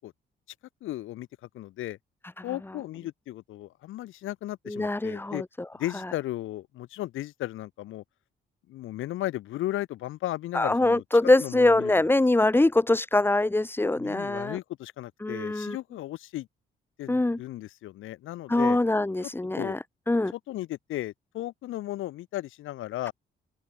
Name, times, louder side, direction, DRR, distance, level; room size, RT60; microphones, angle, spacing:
voice 1, 0.8-1.3 1.5-2.0 2.4-5.4 5.8-8.0 8.7-11.0 11.4-12.1 12.4-12.5 13.9-16.5 17.0-18.8 19.2-19.3 19.5-19.8 20.3-23.1, left 15 dB, 85° left, 8.0 m, -35 dB
voice 2, 4.7-5.4 10.5-14.6 15.2-15.8 17.1-17.4 18.5-19.8 20.1-20.3, left 2 dB, 10° left, 1.2 m, -23 dB
open air
cardioid pair, 90°, 20 cm